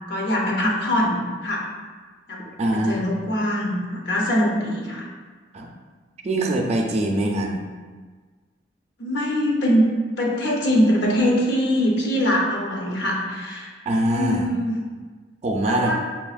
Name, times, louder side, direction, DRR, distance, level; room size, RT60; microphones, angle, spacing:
voice 1, 0.1-1.7 2.3-2.4 2.7-5.1 9.0-9.9 10.2-13.8 14.1-14.9 15.7-15.9, equal, 65° left, -2 dB, 0.8 m, -22 dB
voice 2, 2.4-3.0 5.5-5.7 6.2-7.6 13.9-14.5 15.4-15.9, right 1 dB, 35° right, 1 dB, 0.4 m, -23 dB
5.2 x 2.8 x 2.4 m, 1.4 s
head